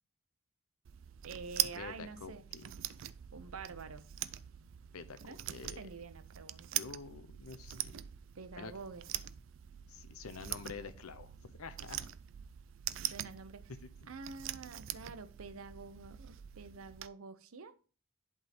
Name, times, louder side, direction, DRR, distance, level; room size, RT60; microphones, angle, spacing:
sound 1, 0.8-17.1, right 13 dB, 60° right, 0.4 m, -43 dB
voice 1, 1.2-2.4 3.3-4.1 5.2-5.4 5.7-6.8 8.4-9.0 13.0-13.7 14.1-17.9, right 4 dB, 80° right, 0.7 m, -48 dB
voice 2, 1.8-2.7 4.9-5.9 6.7-8.1 8.6-8.7 9.9-11.3 11.6-12.0 13.7-13.9, left 4 dB, 90° left, 0.8 m, -47 dB
11.0 x 3.7 x 4.1 m
head